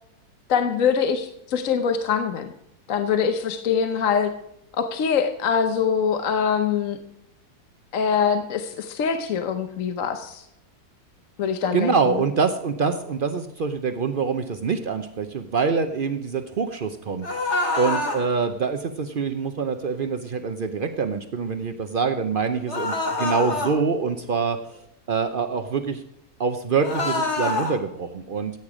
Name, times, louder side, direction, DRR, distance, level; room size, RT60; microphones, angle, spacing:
voice 1, 0.5-2.5 2.9-4.3 4.7-7.0 7.9-10.4 11.4-11.9, left 6 dB, 55° left, 8 dB, 1.1 m, -23 dB
voice 2, 11.7-24.8 25.1-26.0 26.4-28.5, right 5 dB, 80° right, 8 dB, 0.4 m, -25 dB
sound 1, 17.2-18.2 22.7-23.7 26.8-27.7, left 2 dB, 40° left, 2.4 m, -25 dB
15.0 x 9.0 x 4.8 m, 0.81 s
omnidirectional pair, 1.9 m